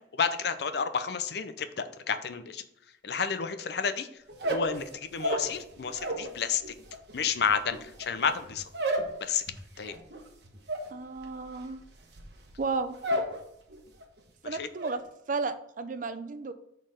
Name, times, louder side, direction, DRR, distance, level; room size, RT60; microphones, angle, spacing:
voice 1, 0.2-2.6 3.0-4.1 4.5-6.6 7.1-8.6 9.2-9.4 9.8-9.9 14.5-14.7, left 6 dB, 60° left, 10 dB, 0.5 m, -30 dB
sound 1, 4.3-6.3 6.6-13.4 13.7-14.2 14.5-15.0, right 1 dB, 65° right, 1.1 m, -33 dB
voice 2, 10.9-11.8 12.6-13.0 14.4-15.0 15.3-16.5, right 4 dB, 45° right, 11 dB, 0.5 m, -33 dB
6.3 x 4.0 x 5.0 m, 0.79 s
head